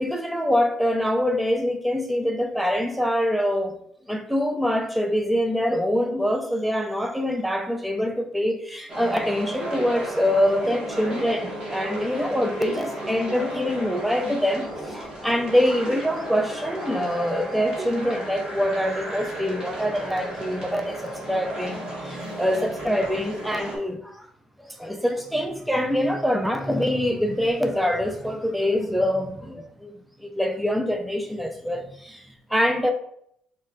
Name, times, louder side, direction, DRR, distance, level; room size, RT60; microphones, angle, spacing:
voice 1, 0.0-3.8 4.1-24.3 24.6-29.9 30.2-32.9, equal, ahead, 0.4 m, -25 dB
sound 1, 8.9-23.8, right 1 dB, 25° right, 1.2 m, -34 dB
4.2 x 2.2 x 3.7 m
cardioid pair, 140°, 3 cm